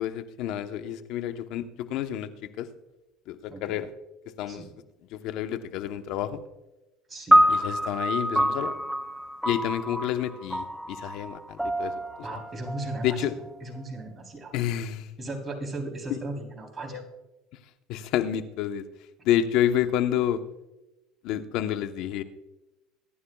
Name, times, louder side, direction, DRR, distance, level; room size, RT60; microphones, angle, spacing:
voice 1, 0.0-2.3 2.6-2.7 3.3-3.9 4.4-4.6 5.1-6.4 7.5-8.7 9.4-12.0 13.0-13.3 14.5-15.1 16.9-17.0 17.9-18.9 19.2-20.4 21.2-22.2, left 11 dB, 65° left, 9 dB, 0.9 m, -29 dB
voice 2, 3.5-3.8 4.5-4.7 7.1-7.5 12.2-14.5 15.2-17.0, right 2 dB, 20° right, 1 dB, 3.5 m, -36 dB
sound 1, 7.3-13.8, equal, ahead, 0.4 m, -26 dB
24.0 x 11.0 x 2.3 m, 1.0 s
supercardioid pair, 105°, 0 cm